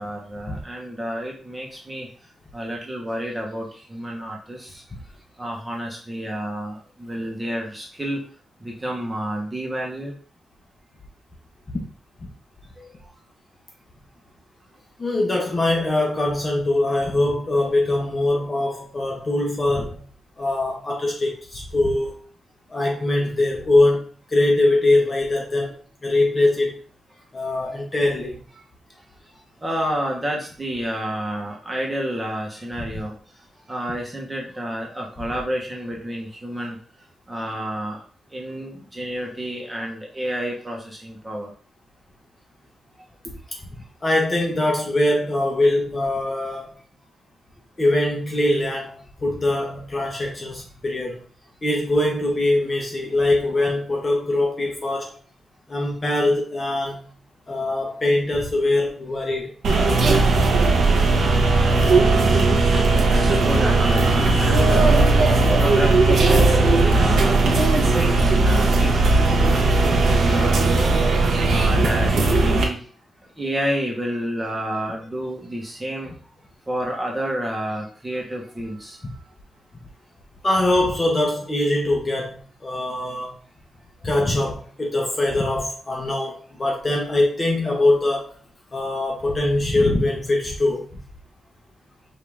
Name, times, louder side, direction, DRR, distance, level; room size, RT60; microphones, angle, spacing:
voice 1, 0.0-2.1 2.5-4.8 5.4-8.2 8.6-10.1 12.8-12.9 29.6-33.2 33.7-36.8 37.3-38.0 38.3-41.5 61.8-62.5 63.1-65.0 65.5-67.4 67.9-68.9 69.4-71.0 71.5-72.8 73.4-76.1 76.7-79.2, equal, 10° right, -2 dB, 1.1 m, -29 dB
voice 2, 15.0-20.0 20.4-22.1 22.7-26.8 27.3-28.4 44.0-46.7 47.8-51.2 51.6-55.1 55.7-57.0 57.5-59.5 80.4-83.4 84.0-88.4 88.7-91.0, left 2 dB, 25° left, -1 dB, 1.0 m, -22 dB
sound 1, 59.6-72.6, right 3 dB, 90° right, 1.0 m, -17 dB
5.2 x 2.7 x 3.5 m, 0.41 s
wide cardioid pair, 165°, 0 cm